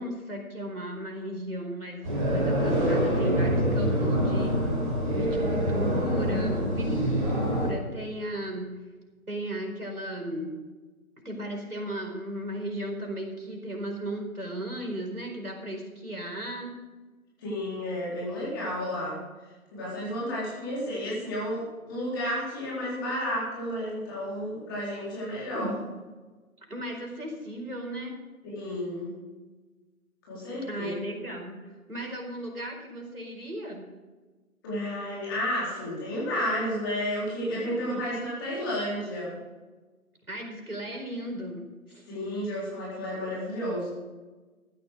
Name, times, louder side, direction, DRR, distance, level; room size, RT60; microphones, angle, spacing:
voice 1, 0.0-4.6 5.1-8.7 9.3-10.6 11.2-16.8 25.5-25.8 26.7-28.2 30.7-33.9 37.5-38.0 40.3-42.0, right 1 dB, 85° right, 1 dB, 4.6 m, -36 dB
sound 1, 2.0-7.7, equal, 25° right, 4.3 m, -25 dB
voice 2, 17.4-19.2 19.7-25.7 28.4-29.1 30.3-30.9 34.6-39.4 42.1-43.9, equal, 15° left, -7 dB, 4.2 m, -32 dB
15.0 x 10.5 x 5.2 m, 1.3 s
figure-of-eight pair, 155°, 43 cm